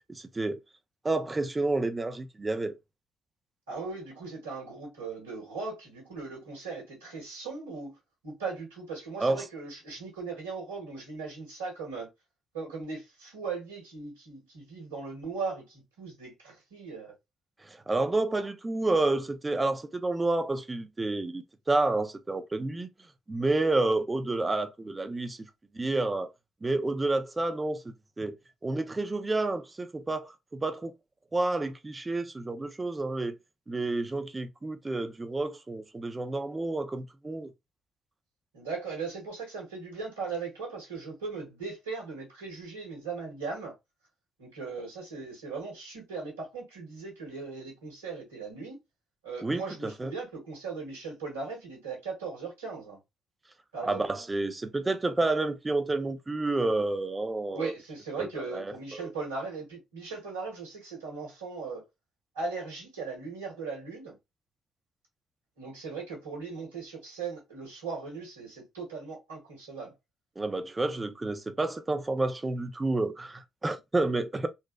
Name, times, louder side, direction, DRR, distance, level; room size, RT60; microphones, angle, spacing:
voice 1, 0.2-0.6 1.0-2.8 9.2-9.4 17.7-22.9 23.3-25.4 25.7-26.3 26.6-28.4 28.6-30.9 31.3-33.4 33.7-37.5 49.4-50.1 53.8-57.7 58.2-59.1 70.4-74.5, right 2 dB, 25° right, 0.6 m, -30 dB
voice 2, 3.7-8.0 8.2-12.1 12.5-17.1 38.5-43.7 44.4-48.8 49.2-53.0 53.7-54.0 57.5-61.8 62.3-64.1 65.6-69.9, right 4 dB, 90° right, 1.5 m, -38 dB
4.0 x 2.3 x 2.2 m
hypercardioid pair, 45°, 0 cm